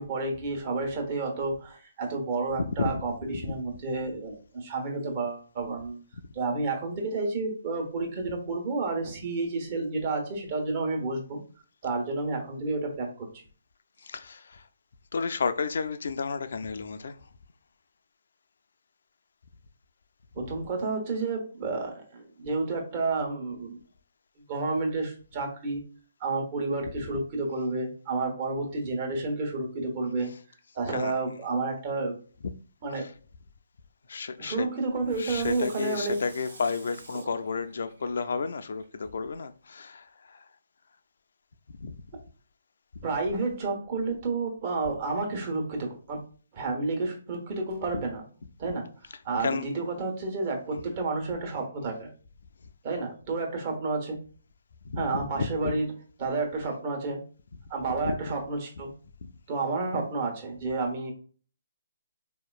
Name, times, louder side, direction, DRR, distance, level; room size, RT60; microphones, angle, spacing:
voice 1, 0.0-6.0 6.3-11.4 11.8-13.4 20.3-23.8 24.4-25.8 26.2-30.3 30.7-32.2 32.8-33.1 34.4-36.2 37.1-37.2 43.0-46.2 46.5-48.2 48.6-48.9 49.2-52.1 52.8-54.2 55.0-55.9 56.2-57.2 57.7-58.9 59.5-61.1, right 3 dB, 40° right, 1.2 m, -30 dB
voice 2, 14.0-14.7 15.1-17.2 20.4-20.6 26.9-27.1 30.2-30.3 30.9-31.2 32.4-32.5 32.9-33.1 34.1-34.7 35.2-40.5 41.8-42.0 47.9-48.0 49.0-49.8 50.7-50.8 54.8-55.7 57.9-58.3 59.2-59.3, left 5 dB, 65° left, 0.4 m, -32 dB
Water tap faucet / Sink (filling or washing), 35.1-38.8 39.3-39.4, right 2 dB, 75° right, 1.2 m, -49 dB
4.3 x 2.8 x 2.4 m
figure-of-eight pair, 140°, 0 cm